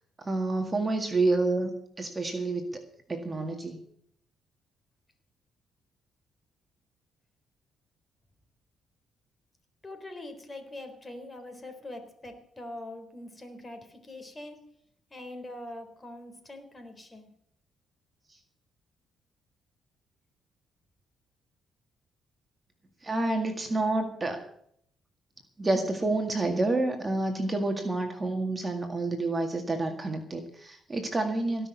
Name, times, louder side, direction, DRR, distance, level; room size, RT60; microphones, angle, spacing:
voice 1, 0.2-2.8 3.1-3.8 23.0-24.4 25.6-31.7, right 2 dB, 25° right, 4 dB, 1.9 m, -29 dB
voice 2, 9.8-14.6 15.1-17.3, left 1 dB, 20° left, 6 dB, 4.0 m, -43 dB
17.5 x 6.2 x 9.5 m, 0.68 s
cardioid pair, 90°, 0 cm